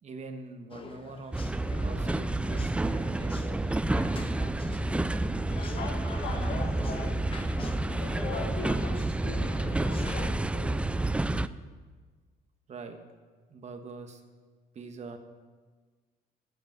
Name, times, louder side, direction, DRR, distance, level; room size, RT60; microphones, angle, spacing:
voice 1, 0.0-3.4 12.7-13.0 13.5-14.2 14.7-15.2, right 3 dB, 40° right, 6 dB, 1.4 m, -44 dB
sound 1, 0.7-10.3, left 4 dB, 30° left, 1.0 m, -44 dB
sound 2, 1.3-11.5, right 2 dB, 5° right, 0.3 m, -29 dB
voice 2, 5.8-7.2 7.9-10.9, left 5 dB, 85° left, 0 dB, 1.4 m, -42 dB
13.5 x 5.3 x 9.2 m, 1.4 s
cardioid pair, 110°, 17 cm